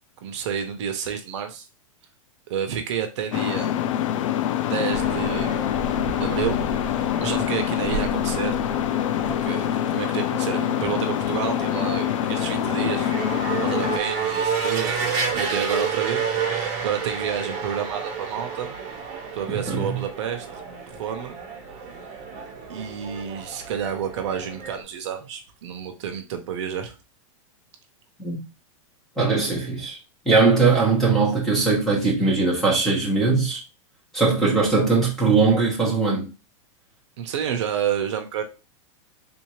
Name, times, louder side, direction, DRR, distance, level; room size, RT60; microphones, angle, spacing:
voice 1, 0.2-1.7 2.5-3.7 4.6-5.6 6.2-8.5 9.3-13.1 13.6-18.7 19.3-20.5 21.0-21.4 22.7-26.9 37.2-38.4, right 8 dB, 60° right, 0.7 m, -30 dB
sound 1, 3.3-14.0, left 11 dB, 75° left, 0.4 m, -25 dB
sound 2, 4.9-24.8, right 5 dB, 40° right, 1.0 m, -31 dB
voice 2, 19.5-20.0 28.2-28.4 29.2-30.0 30.3-33.6 34.1-36.3, right 4 dB, ahead, 0.9 m, -20 dB
3.6 x 2.7 x 3.0 m
supercardioid pair, 160°, 17 cm